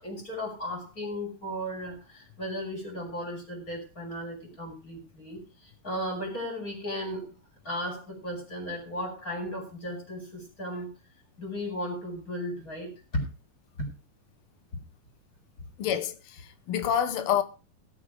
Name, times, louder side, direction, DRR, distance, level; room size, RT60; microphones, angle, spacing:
voice 1, 0.0-7.3 7.6-10.9 11.4-13.2 13.8-13.9 14.7-14.8, equal, 20° left, 6.1 m, -35 dB
voice 2, 15.8-17.4, left 9 dB, 85° left, 1.2 m, -28 dB
18.0 x 7.8 x 5.0 m
omnidirectional pair, 4.1 m